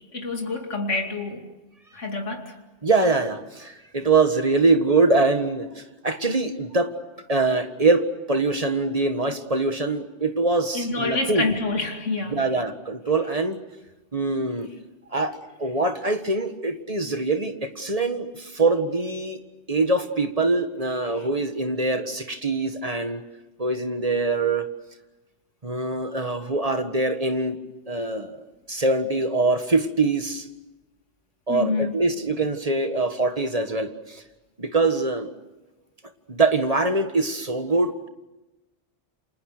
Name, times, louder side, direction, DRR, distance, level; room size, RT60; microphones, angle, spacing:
voice 1, 0.1-1.4 1.9-2.5 10.7-12.4 31.5-31.9, left 3 dB, 85° left, 2 dB, 3.0 m, -27 dB
voice 2, 2.8-6.9 7.3-11.5 12.3-13.6 14.1-14.7 15.1-19.4 19.7-23.2 23.6-24.7 25.6-27.6 27.9-30.5 31.5-34.2 34.6-35.3 36.3-38.1, right 3 dB, 30° right, 7 dB, 1.8 m, -23 dB
29.5 x 27.5 x 6.8 m, 1.1 s
omnidirectional pair, 1.2 m